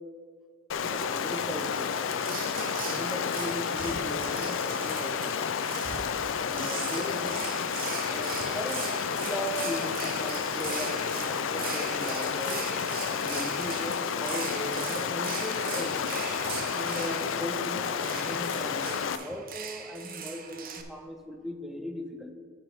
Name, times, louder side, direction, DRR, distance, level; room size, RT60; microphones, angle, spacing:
Stream, 0.7-19.2, left 7 dB, 75° left, 0.4 m, -31 dB
voice 1, 0.7-1.9 2.6-5.4 6.4-7.6 8.1-8.9 9.2-12.9 13.2-16.0 16.7-22.3, equal, ahead, 5 dB, 0.6 m, -38 dB
sound 1, 2.2-20.8, right 7 dB, 45° right, 0.7 m, -40 dB
Bowed string instrument, 3.6-8.8, right 4 dB, 20° right, 1.9 m, -58 dB
12.5 x 6.2 x 3.5 m, 2.1 s
head